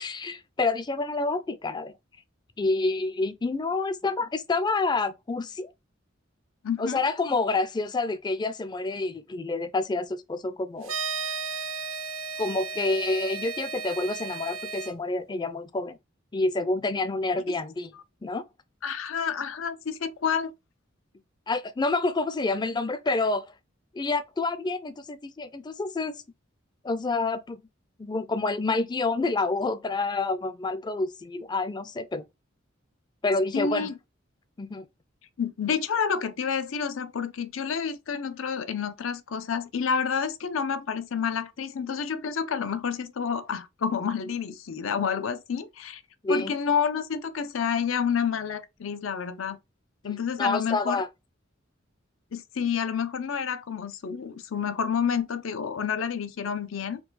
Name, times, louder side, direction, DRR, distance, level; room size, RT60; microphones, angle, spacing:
voice 1, 0.0-1.9 2.6-5.7 6.8-10.9 12.4-16.0 16.3-17.9 18.2-18.4 21.5-23.5 23.9-26.2 26.8-27.6 28.0-32.2 33.2-33.9 34.6-34.9 46.2-46.5 50.4-51.1, left 3 dB, 20° left, 0.4 m, -28 dB
voice 2, 6.6-7.0 18.8-20.5 33.5-33.9 35.4-46.0 46.3-49.6 50.0-51.0 52.3-57.0, left 6 dB, 80° left, 0.5 m, -29 dB
sound 1, 10.8-14.9, right 5 dB, 85° right, 0.7 m, -34 dB
4.6 x 2.2 x 3.9 m
head